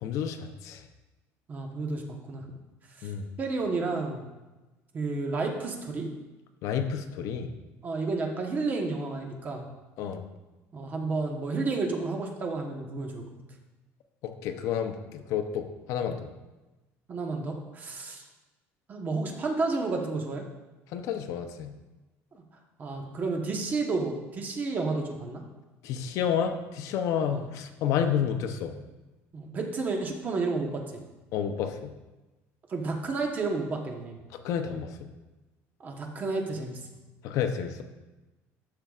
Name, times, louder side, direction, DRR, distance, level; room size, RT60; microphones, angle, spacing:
voice 1, 0.0-0.8 3.0-3.3 6.6-7.5 10.0-10.2 14.2-16.3 20.9-21.7 25.8-28.8 31.3-31.9 34.4-35.1 37.2-37.8, left 8 dB, 65° left, 7 dB, 0.6 m, -30 dB
voice 2, 1.5-2.4 3.0-3.1 3.4-4.2 4.9-6.1 7.8-9.7 10.7-13.2 17.1-18.2 18.9-20.4 22.8-25.4 27.3-27.4 29.3-31.0 32.7-34.2 35.8-36.8, right 3 dB, 30° right, 2 dB, 1.1 m, -31 dB
11.5 x 6.6 x 2.4 m, 1.1 s
cardioid pair, 140°, 6 cm